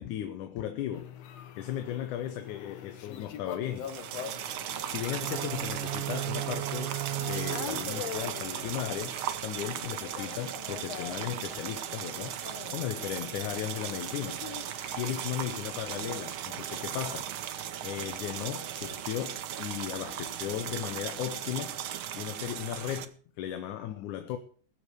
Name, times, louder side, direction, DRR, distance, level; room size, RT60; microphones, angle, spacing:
voice 1, 0.0-3.9 4.3-4.6 4.9-12.4 12.7-14.5 15.0-17.3 17.8-21.8 22.2-24.4, left 11 dB, 80° left, 2.4 m, -36 dB
sound 1, 0.9-17.1 17.6-18.0, left 8 dB, 65° left, 2.0 m, -45 dB
sound 2, 3.8-23.0, right 10 dB, 85° right, 1.1 m, -37 dB
sound 3, 5.1-9.2, right 17 dB, 70° right, 1.4 m, -37 dB
21.0 x 7.0 x 4.7 m
omnidirectional pair, 3.5 m